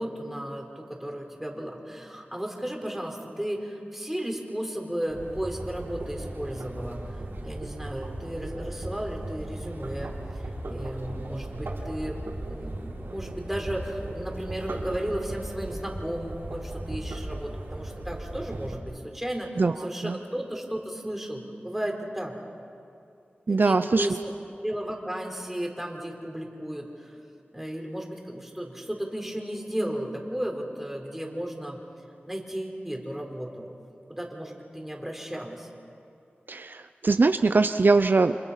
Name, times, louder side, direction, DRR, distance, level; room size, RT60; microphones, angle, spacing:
voice 1, 0.0-7.0 7.4-12.2 12.5-22.3 23.5-24.3 24.6-27.2 27.5-31.8 32.3-33.6 34.1-35.7, right 1 dB, 5° right, 1 dB, 4.1 m, -34 dB
sound 1, 5.1-18.8, right 1 dB, 90° right, 4.0 m, -37 dB
voice 2, 23.5-24.1 36.5-38.4, right 3 dB, 60° right, 9 dB, 0.6 m, -22 dB
30.0 x 26.0 x 5.8 m, 2.5 s
wide cardioid pair, 70°, 4 cm